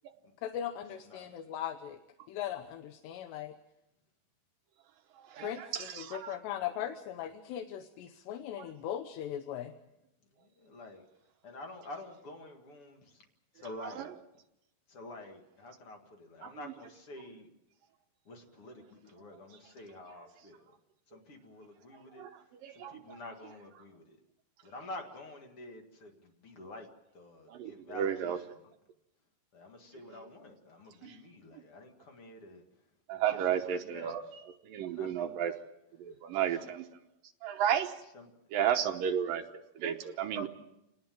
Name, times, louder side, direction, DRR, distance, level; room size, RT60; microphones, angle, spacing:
voice 1, 0.4-2.0 2.3-3.5 5.4-5.6 6.0-9.7, left 10 dB, 80° left, 8 dB, 3.2 m, -38 dB
voice 2, 1.0-1.5 10.4-11.0 11.4-13.2 13.5-14.1 14.9-17.5 18.3-20.7 21.1-22.3 22.9-24.2 24.6-28.3 29.5-32.6 33.5-34.2 34.8-35.4 36.6-36.7 38.1-38.3, left 2 dB, 40° left, 3 dB, 2.3 m, -48 dB
voice 3, 5.2-6.4 8.6-8.7 13.8-14.1 16.4-16.5 21.9-23.2 27.5-28.4 30.0-30.2 31.0-31.2 31.5-31.6 33.1-34.2 34.6-35.5 36.0-36.9 37.4-37.9 38.5-40.5, right 9 dB, 70° right, 5 dB, 2.3 m, -33 dB
27.5 x 19.0 x 7.5 m, 0.88 s
omnidirectional pair, 4.9 m